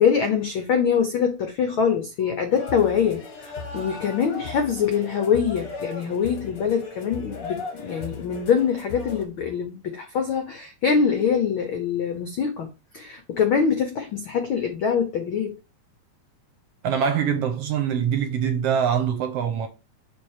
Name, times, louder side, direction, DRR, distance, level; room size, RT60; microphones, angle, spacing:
voice 1, 0.0-12.7 12.9-15.6, left 7 dB, 80° left, 1.1 m, -24 dB
sound 1, 2.5-9.3, left 4 dB, 55° left, 0.9 m, -37 dB
voice 2, 16.8-19.7, right 8 dB, 70° right, 1.6 m, -24 dB
5.8 x 3.6 x 4.7 m
omnidirectional pair, 3.3 m